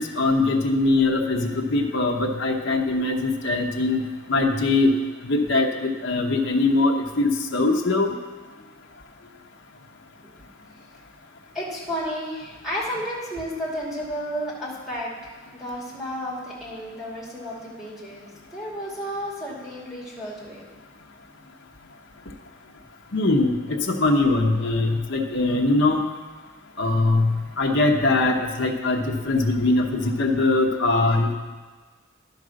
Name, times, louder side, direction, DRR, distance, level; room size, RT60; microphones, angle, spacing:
voice 1, 0.0-4.0 4.3-4.9 5.2-8.1 23.1-26.0 26.8-31.3, left 2 dB, 65° left, 0 dB, 0.9 m, -22 dB
voice 2, 11.5-15.1 15.5-20.7, equal, ahead, -6 dB, 2.5 m, -32 dB
11.0 x 5.3 x 6.4 m, 1.4 s
head